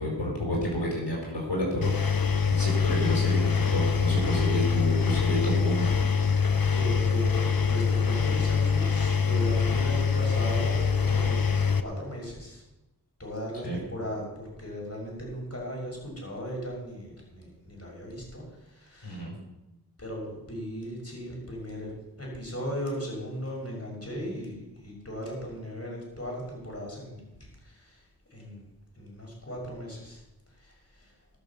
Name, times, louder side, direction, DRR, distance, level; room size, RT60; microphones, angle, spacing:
voice 1, 0.0-5.9 13.6-13.8 19.0-19.3, equal, 85° left, -3 dB, 4.7 m, -30 dB
Engine, 1.8-11.8, left 6 dB, 60° left, 1.0 m, -24 dB
voice 2, 6.6-12.6 13.2-19.2 20.0-28.0 28.3-28.6 29.0-30.2 30.6-31.1, equal, 35° left, -2 dB, 6.3 m, -37 dB
19.0 x 6.5 x 7.1 m, 0.95 s
wide cardioid pair, 40°, 40 cm